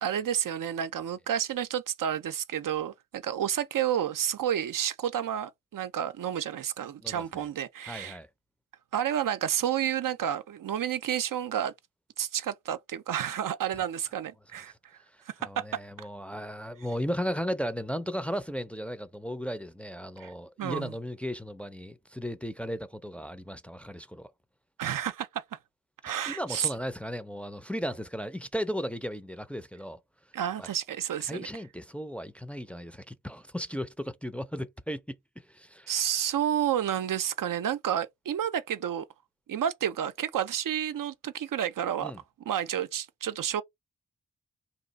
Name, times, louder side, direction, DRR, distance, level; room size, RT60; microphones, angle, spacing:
voice 1, 0.0-8.2 8.9-11.7 12.2-14.7 15.3-16.1 20.2-20.3 20.6-20.9 24.8-25.6 26.0-26.7 30.3-31.5 35.9-39.1 39.5-42.1 42.5-43.6, right 10 dB, 80° right, 0.5 m, -30 dB
voice 2, 7.0-7.4 7.9-8.3 13.7-13.8 15.1-24.3 26.1-30.0 30.6-30.7 31.3-36.0 42.0-42.2, equal, 5° left, 0.4 m, -36 dB
2.9 x 2.4 x 3.9 m
cardioid pair, 60°, 32 cm